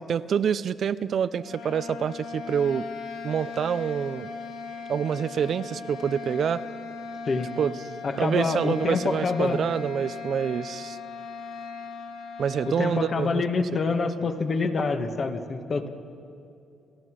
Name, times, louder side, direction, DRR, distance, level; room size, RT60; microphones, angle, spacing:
voice 1, 0.1-2.8 3.2-4.3 4.9-6.6 7.6-7.7 8.2-11.0 12.4-13.4, right 8 dB, 60° right, 15 dB, 0.5 m, -27 dB
sound 1, 1.3-13.2, left 4 dB, 80° left, 1.6 m, -38 dB
voice 2, 8.0-9.6 12.6-15.9, left 4 dB, 45° left, 7 dB, 1.6 m, -26 dB
29.5 x 14.0 x 6.3 m, 2.7 s
cardioid pair, 90°, 0 cm